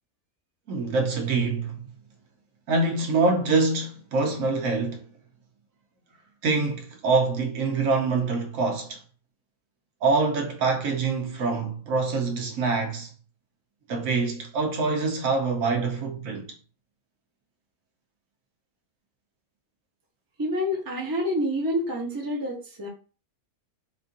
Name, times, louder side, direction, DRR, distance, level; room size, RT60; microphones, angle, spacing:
voice 1, 0.7-1.8 2.7-5.0 6.4-9.0 10.0-13.1 13.9-16.5, right 3 dB, 70° right, 1.0 m, -25 dB
voice 2, 20.4-22.9, equal, 20° right, 0.7 m, -28 dB
4.3 x 2.5 x 2.5 m
omnidirectional pair, 1.5 m